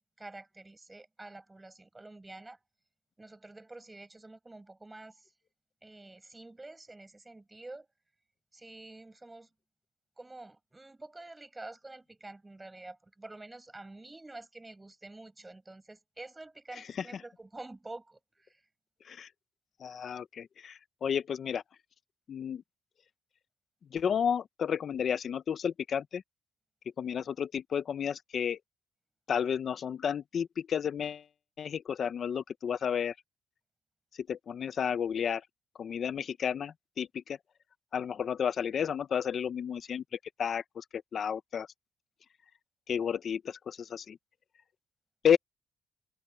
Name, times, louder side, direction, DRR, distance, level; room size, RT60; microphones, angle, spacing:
voice 1, 0.0-2.6 3.2-5.2 5.8-7.9 8.5-9.5 10.2-18.6, right 2 dB, 15° right, 5.9 m, -48 dB
voice 2, 16.7-17.2 19.0-19.3 19.8-21.6 22.3-22.6 23.9-26.2 27.0-28.6 29.3-31.2 31.6-33.1 34.3-35.4 35.8-37.4 37.9-40.8 41.1-41.7 42.9-44.2 45.2-45.4, left 8 dB, 55° left, 0.8 m, -32 dB
open air
cardioid pair, 90°, 0 cm